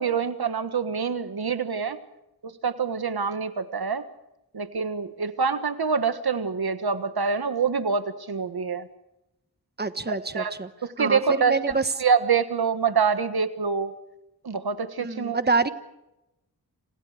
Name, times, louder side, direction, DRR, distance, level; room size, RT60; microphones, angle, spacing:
voice 1, 0.0-2.0 2.6-4.0 4.5-8.9 10.1-10.5 10.8-11.6 12.0-13.9 14.4-15.4, right 5 dB, 80° right, 10 dB, 1.5 m, -26 dB
voice 2, 9.8-10.7 11.0-11.9 15.0-15.7, right 4 dB, 25° right, 11 dB, 1.3 m, -26 dB
29.5 x 28.0 x 5.0 m, 0.92 s
wide cardioid pair, 80°, 37 cm